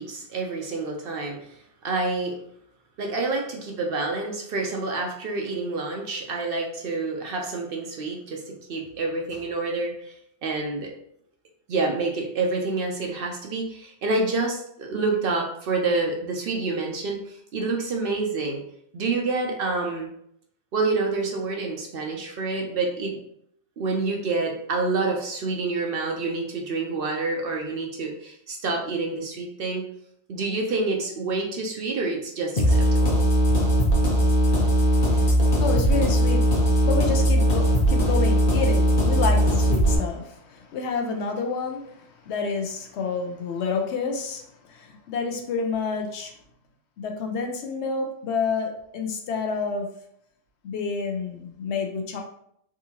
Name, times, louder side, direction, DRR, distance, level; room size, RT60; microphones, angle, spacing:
voice 1, 0.0-2.4 3.0-10.1 10.4-10.9 11.7-18.6 18.9-20.1 20.7-23.2 23.8-29.8 30.3-33.2 33.5-33.6, right 3 dB, 60° right, 1 dB, 0.7 m, -28 dB
sound 1, 32.6-40.0, equal, 40° left, 0.8 m, -19 dB
voice 2, 34.5-46.3 47.0-49.9 50.6-52.2, left 4 dB, 70° left, 3 dB, 0.8 m, -29 dB
3.6 x 2.6 x 2.8 m, 0.71 s
omnidirectional pair, 1.2 m